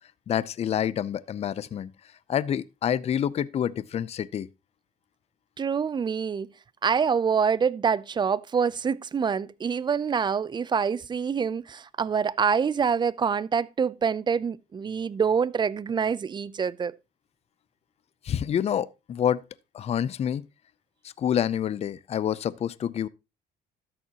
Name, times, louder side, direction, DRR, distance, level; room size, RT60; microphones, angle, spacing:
voice 1, 0.3-1.9 2.3-4.5 18.2-19.4 19.7-20.4 21.2-23.1, left 9 dB, 40° left, 0.5 m, -27 dB
voice 2, 5.6-6.5 6.8-16.9, right 6 dB, 25° right, 0.4 m, -26 dB
13.0 x 7.2 x 2.9 m
cardioid pair, 110°, 17 cm